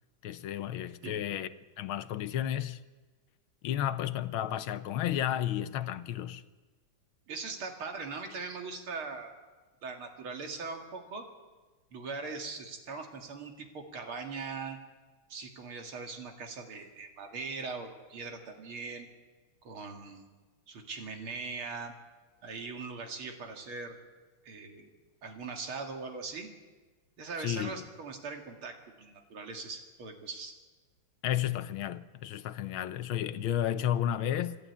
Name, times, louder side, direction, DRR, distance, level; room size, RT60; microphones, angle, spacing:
voice 1, 0.2-1.5 1.8-2.8 3.6-6.4 27.4-27.8 31.2-34.6, left 11 dB, 85° left, 1.6 m, -32 dB
voice 2, 7.3-9.4 9.8-11.2 11.9-14.8 15.3-19.1 19.6-20.2 20.7-21.9 22.4-24.0 24.4-24.9 25.2-26.5 27.2-30.5, right 4 dB, 85° right, 3.0 m, -40 dB
26.5 x 12.0 x 8.5 m
omnidirectional pair, 2.3 m